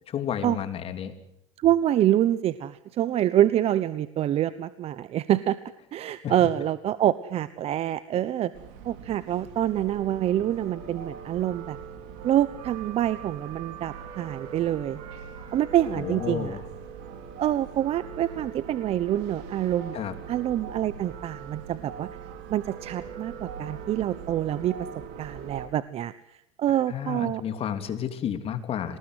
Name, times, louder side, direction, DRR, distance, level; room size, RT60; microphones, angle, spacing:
voice 1, 0.1-1.1 6.2-6.3 15.9-16.6 19.9-20.1 26.7-29.0, left 9 dB, 35° left, 10 dB, 3.1 m, -31 dB
voice 2, 1.6-5.6 5.9-8.5 8.8-11.8 12.2-15.0 15.5-16.6 17.4-20.0 20.3-22.1 22.5-24.9 25.2-26.1 26.6-27.4, right 12 dB, 40° right, 16 dB, 0.9 m, -26 dB
sound 1, 8.5-25.7, right 7 dB, 65° right, 4.7 m, -41 dB
27.0 x 19.5 x 8.1 m, 0.78 s
supercardioid pair, 120°, 16 cm